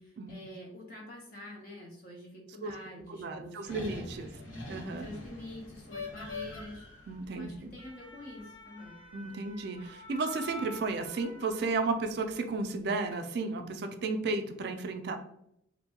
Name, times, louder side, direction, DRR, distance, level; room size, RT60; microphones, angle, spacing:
voice 1, 0.0-4.0 5.0-6.8 7.3-9.0, left 1 dB, 45° left, -2 dB, 0.8 m, -47 dB
voice 2, 3.1-4.3 4.7-5.1 7.1-7.7 9.1-15.2, right 3 dB, 55° right, 6 dB, 0.3 m, -33 dB
sound 1, 3.6-12.1 12.8-13.1, left 2 dB, 80° left, 1.0 m, -45 dB
2.6 x 2.2 x 2.8 m, 0.73 s
head